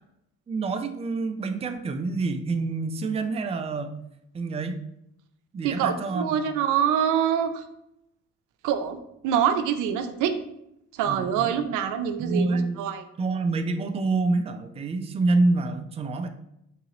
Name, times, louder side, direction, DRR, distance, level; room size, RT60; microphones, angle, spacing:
voice 1, 0.5-4.0 4.3-4.8 5.5-6.4 11.1-11.5 12.2-12.8 13.2-16.3, right 3 dB, 20° right, 7 dB, 0.4 m, -27 dB
voice 2, 5.6-7.6 8.6-9.0 9.2-10.4 10.9-13.0, right 8 dB, 90° right, 7 dB, 0.5 m, -25 dB
3.9 x 3.7 x 2.9 m, 0.80 s
cardioid pair, 90°, 30 cm